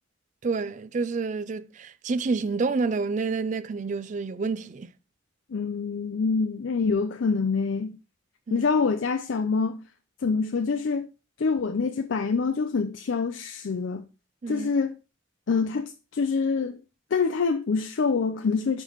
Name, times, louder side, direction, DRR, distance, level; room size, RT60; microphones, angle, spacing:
voice 1, 0.4-4.9 8.5-8.7 14.4-14.7, right 4 dB, 40° right, 0.4 m, -29 dB
voice 2, 5.5-8.0 8.5-9.8 10.2-11.1 11.4-14.1 14.5-15.0 15.5-16.8 17.1-18.8, left 4 dB, 75° left, 0.5 m, -26 dB
6.0 x 4.4 x 4.0 m
head